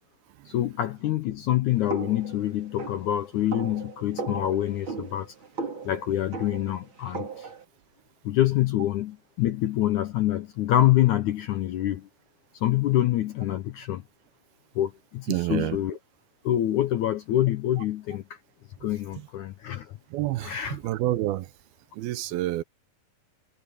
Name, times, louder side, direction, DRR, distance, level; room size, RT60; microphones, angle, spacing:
voice 1, 0.5-5.3 5.9-7.5 8.3-12.1 12.5-14.0 14.8-16.0 16.4-18.4 18.8-20.0 20.4-20.8, left 13 dB, 75° left, 1.8 m, -26 dB
sound 1, 1.9-7.6, right 4 dB, 35° right, 3.1 m, -37 dB
voice 2, 15.3-15.8 20.1-21.5 22.0-22.6, right 15 dB, 80° right, 2.6 m, -28 dB
omnidirectional pair, 4.5 m